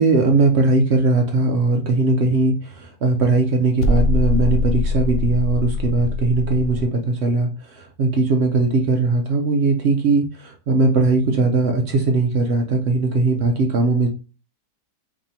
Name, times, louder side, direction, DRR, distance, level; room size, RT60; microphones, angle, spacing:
voice 1, 0.0-7.5 7.8-14.1, right 3 dB, 65° right, 3 dB, 0.6 m, -19 dB
sound 1, 3.8-6.9, left 3 dB, 85° left, 1.2 m, -22 dB
4.8 x 2.7 x 2.7 m, 0.32 s
omnidirectional pair, 1.7 m